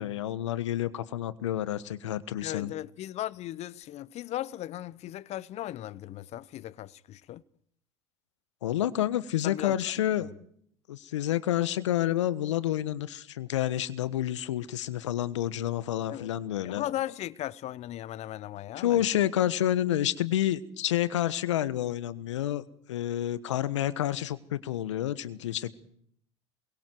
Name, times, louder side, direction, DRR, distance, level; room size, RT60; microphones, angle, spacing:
voice 1, 0.0-2.7 8.6-10.3 10.9-16.8 18.8-22.6 22.9-25.7, left 12 dB, 80° left, 1.3 m, -29 dB
voice 2, 2.4-7.4 9.4-9.7 16.1-16.3 16.6-19.2, left 13 dB, 45° left, 0.8 m, -37 dB
27.5 x 23.0 x 4.6 m
hypercardioid pair, 75°, 15 cm